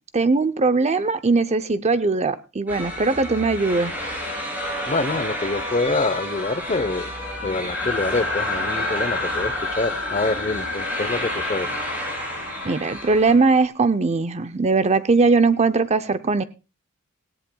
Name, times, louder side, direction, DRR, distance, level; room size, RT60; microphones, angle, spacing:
voice 1, 0.1-3.9 12.6-16.4, right 3 dB, 30° right, 12 dB, 0.6 m, -20 dB
sound 1, 2.7-13.3, equal, 10° right, 7.1 m, -30 dB
voice 2, 4.9-7.1 7.4-11.7, left 3 dB, 30° left, 13 dB, 0.8 m, -25 dB
sound 2, 7.7-13.6, left 3 dB, 65° left, 6.4 m, -31 dB
18.0 x 17.5 x 2.3 m, 0.30 s
head